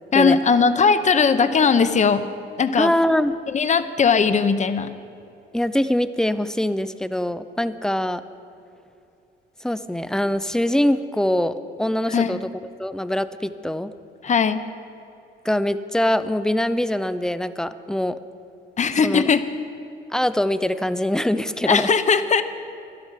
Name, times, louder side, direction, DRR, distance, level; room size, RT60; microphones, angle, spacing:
voice 1, 0.1-2.3 2.6-2.9 3.5-4.9 12.1-12.4 14.2-14.6 18.8-19.4 21.7-22.4, left 5 dB, 35° left, 11 dB, 0.7 m, -19 dB
voice 2, 2.8-3.4 5.5-8.2 9.6-12.4 12.8-13.9 15.4-18.2 19.0-19.3 20.1-21.9, left 1 dB, 5° left, 13 dB, 0.5 m, -23 dB
12.5 x 12.0 x 5.8 m, 2.7 s
cardioid pair, 90°, 20 cm